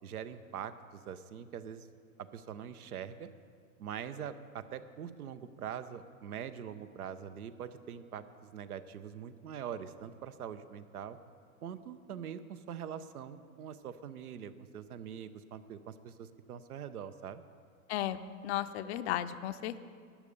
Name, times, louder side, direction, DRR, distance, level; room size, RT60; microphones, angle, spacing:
voice 1, 0.0-1.9 2.2-3.3 3.8-11.2 11.6-17.4, right 8 dB, 85° right, 12 dB, 0.8 m, -43 dB
voice 2, 17.9-19.8, left 12 dB, 50° left, 13 dB, 0.6 m, -35 dB
12.0 x 8.7 x 5.3 m, 2.1 s
hypercardioid pair, 110°, 43 cm